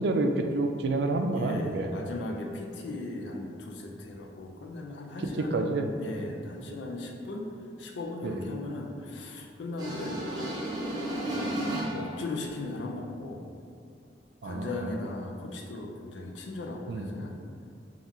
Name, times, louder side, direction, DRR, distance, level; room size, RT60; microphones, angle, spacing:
voice 1, 0.0-1.9 5.2-5.9 8.2-8.4 14.4-15.0 16.9-17.1, right 2 dB, 65° right, 5 dB, 0.3 m, -29 dB
voice 2, 1.3-7.5 7.8-10.2 11.2-11.5 11.9-13.4 14.4-17.3, left 2 dB, 80° left, 1 dB, 0.5 m, -37 dB
sound 1, 9.8-12.2, right 1 dB, 25° right, 0.7 m, -33 dB
3.6 x 2.4 x 4.1 m, 2.4 s
head